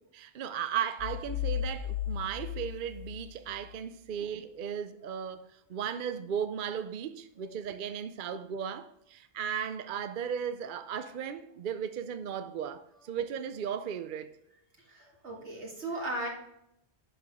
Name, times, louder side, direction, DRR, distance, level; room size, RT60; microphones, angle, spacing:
voice 1, 0.1-14.3, right 8 dB, 55° right, 0.7 m, -36 dB
sound 1, 1.0-3.8, left 10 dB, 65° left, 0.7 m, -35 dB
voice 2, 14.9-16.3, right 1 dB, 80° right, 2.4 m, -37 dB
10.5 x 5.8 x 3.6 m
omnidirectional pair, 1.1 m